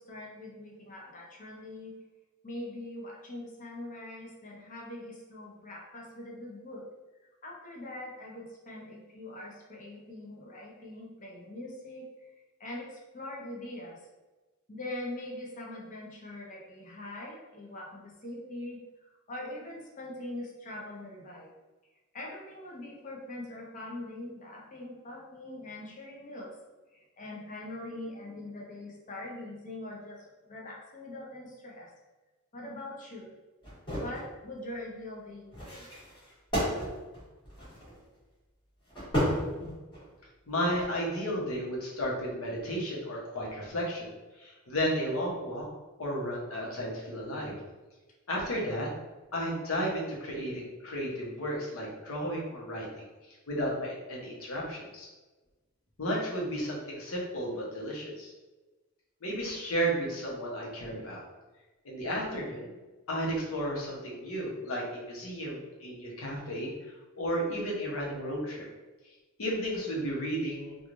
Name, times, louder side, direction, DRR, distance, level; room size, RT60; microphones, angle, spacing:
voice 1, 0.0-2.0 2.4-6.8 7.4-12.3 12.6-14.0 14.7-21.5 22.1-26.6 26.9-31.9 32.5-33.3 33.9-35.9, left 1 dB, 40° left, -2 dB, 0.6 m, -42 dB
sound 1, 33.6-34.3 35.5-38.0 38.9-40.1 40.6-40.8, equal, 25° left, 1.4 m, -33 dB
voice 2, 40.5-44.1 44.4-45.6 46.0-47.5 48.3-48.9 49.3-53.0 53.5-55.1 56.0-58.3 59.2-61.2 61.8-62.7 63.1-68.6 69.4-70.8, equal, 85° left, -3 dB, 0.8 m, -33 dB
3.1 x 2.3 x 2.5 m, 1.2 s
head